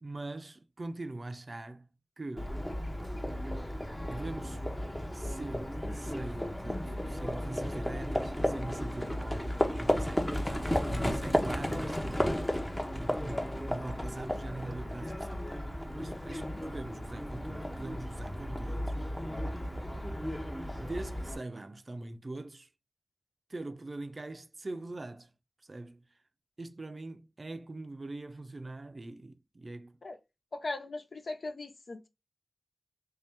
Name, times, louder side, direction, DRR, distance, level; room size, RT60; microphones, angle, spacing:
voice 1, 0.0-1.9 2.2-2.6 4.1-4.6 5.1-10.3 10.8-12.5 12.8-15.5 15.9-18.9 20.8-22.7 23.5-25.3 25.7-26.0 26.6-30.0, right 2 dB, 45° right, 0.5 m, -42 dB
Livestock farm animals working animals, 2.4-21.4, equal, 15° left, 0.8 m, -34 dB
voice 2, 30.5-32.1, left 2 dB, 65° left, 0.7 m, -39 dB
3.3 x 2.8 x 3.5 m
wide cardioid pair, 75°, 0 cm